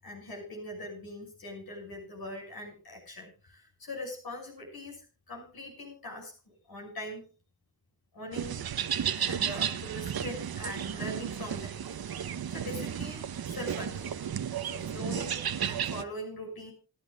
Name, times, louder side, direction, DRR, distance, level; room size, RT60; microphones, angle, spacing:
voice 1, 0.0-5.0 5.3-7.3 8.1-8.6 9.2-11.7 12.0-14.1 14.7-16.7, left 1 dB, 80° left, 1 dB, 6.4 m, -42 dB
sound 1, 8.3-16.0, right 8 dB, 80° right, 1.0 m, -33 dB
27.5 x 10.5 x 2.4 m, 0.33 s
cardioid pair, 60°, 36 cm